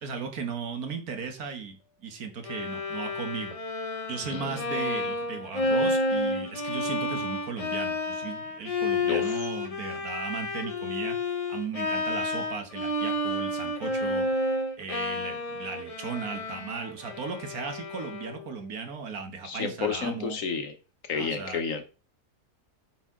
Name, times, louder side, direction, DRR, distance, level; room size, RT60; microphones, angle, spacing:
voice 1, 0.0-3.6 4.1-14.3 14.8-20.4 21.1-21.6, right 5 dB, 65° right, 1.7 m, -36 dB
Bowed string instrument, 2.4-18.5, left 1 dB, 35° left, 0.6 m, -30 dB
voice 2, 9.0-9.4 19.4-20.7 21.1-21.9, left 5 dB, 60° left, 1.3 m, -31 dB
8.4 x 4.6 x 3.6 m
omnidirectional pair, 1.7 m